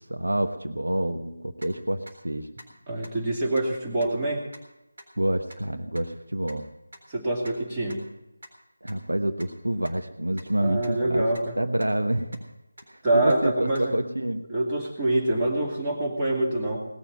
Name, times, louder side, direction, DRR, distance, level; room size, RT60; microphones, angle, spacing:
voice 1, 0.1-2.5 5.2-6.6 8.8-11.3 11.6-12.4 12.9-14.4, right 1 dB, 75° right, 6 dB, 1.1 m, -28 dB
sound 1, 1.6-1.7 2.1-2.2 2.6-2.7 3.0-3.1 3.5-3.6 4.0-4.1 4.5-4.6 5.0-5.1 5.5-5.6 5.9-6.0 6.5-6.6 6.9-7.0 7.4-7.5 7.9-8.0 8.4-8.5 8.9-9.0 9.4-9.5 9.8-9.9 10.4-10.5 10.8-10.9 11.3-11.4 11.8-11.9 12.3-12.4 12.8-12.9 13.3-13.4 13.7-13.8, equal, 60° right, 3.8 m, -45 dB
voice 2, 2.9-4.4 7.1-8.0 10.6-11.6 13.0-13.9 14.5-16.9, right 1 dB, 20° right, -2 dB, 2.6 m, -25 dB
18.5 x 7.0 x 7.6 m, 0.92 s
figure-of-eight pair, 160°, 0 cm